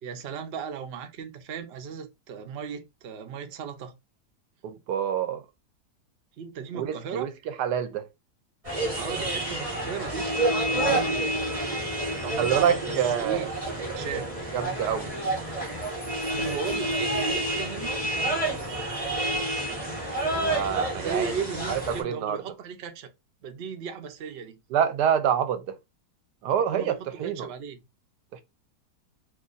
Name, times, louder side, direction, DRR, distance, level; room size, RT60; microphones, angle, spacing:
voice 1, 0.0-3.9 6.4-7.3 9.0-11.4 12.1-13.5 13.9-14.3 16.3-19.0 20.9-23.1 23.4-24.6 26.7-27.8, right 6 dB, 60° right, 0.7 m, -36 dB
voice 2, 4.6-5.4 6.7-8.1 10.8-11.1 12.4-13.5 13.9-14.1 14.5-15.1 20.3-21.3 21.7-22.4 24.7-25.8 26.4-27.5 28.3-28.4, right 8 dB, 80° right, 1.1 m, -27 dB
sound 1, 8.6-22.0, right 1 dB, 25° right, 1.3 m, -29 dB
2.8 x 2.5 x 3.8 m
omnidirectional pair, 1.8 m